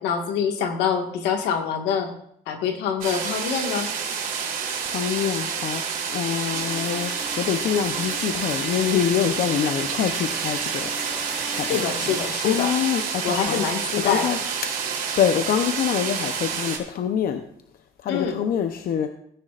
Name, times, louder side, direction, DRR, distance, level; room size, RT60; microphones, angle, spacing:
voice 1, 0.0-2.1 2.5-3.9 11.7-12.7 13.2-14.4 18.1-18.4, left 7 dB, 85° left, 4 dB, 1.8 m, -25 dB
sound 1, 3.0-16.8, right 6 dB, 55° right, 3.4 m, -29 dB
voice 2, 4.9-5.8 6.1-7.1 7.4-11.9 12.4-13.6 14.0-14.4 14.6-14.7 15.2-17.4 18.0-19.1, left 9 dB, 60° left, 7 dB, 0.8 m, -25 dB
sound 2, 6.5-14.5, right 1 dB, 5° right, 1.9 m, -39 dB
17.5 x 9.7 x 2.5 m, 0.69 s
cardioid pair, 110°, 17 cm